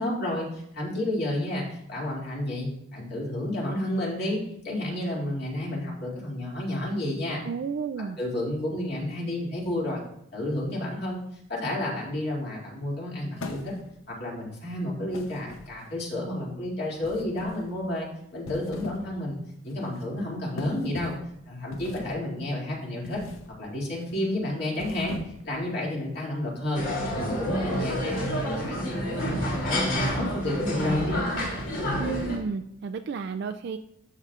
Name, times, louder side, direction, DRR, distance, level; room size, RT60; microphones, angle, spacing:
voice 1, 0.0-7.4 8.0-10.0 10.3-11.2 11.5-13.7 14.1-18.1 18.3-19.4 19.6-21.1 21.5-23.2 23.6-25.1 25.4-31.2, left 1 dB, 50° left, -4 dB, 2.5 m, -31 dB
voice 2, 7.4-8.2 32.0-33.8, right 5 dB, 55° right, 7 dB, 0.3 m, -32 dB
sound 1, 13.4-14.1 15.1-16.0 17.0-17.7 18.3-19.1 19.5-19.7 20.6-21.3 21.7-22.3 23.0-23.5 23.9-24.2 24.7-25.6, left 3 dB, 85° left, 0.7 m, -40 dB
sound 2, 26.7-32.4, equal, 65° left, 2.8 m, -28 dB
13.0 x 5.5 x 2.4 m, 0.76 s
head